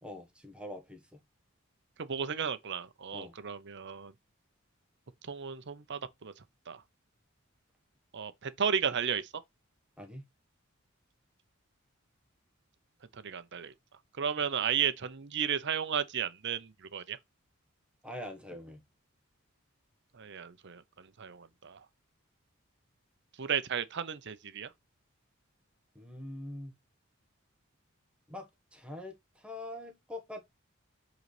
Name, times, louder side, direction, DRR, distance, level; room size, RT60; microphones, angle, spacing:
voice 1, 0.0-1.2 3.1-3.3 10.0-10.3 18.0-18.8 25.9-26.7 28.3-30.4, left 1 dB, 5° right, 1.2 m, -44 dB
voice 2, 2.0-4.1 5.2-6.3 6.7-6.8 8.1-9.3 13.1-13.7 14.2-17.2 20.1-21.8 23.4-24.7, right 7 dB, 60° right, 0.7 m, -34 dB
7.9 x 3.9 x 3.2 m
head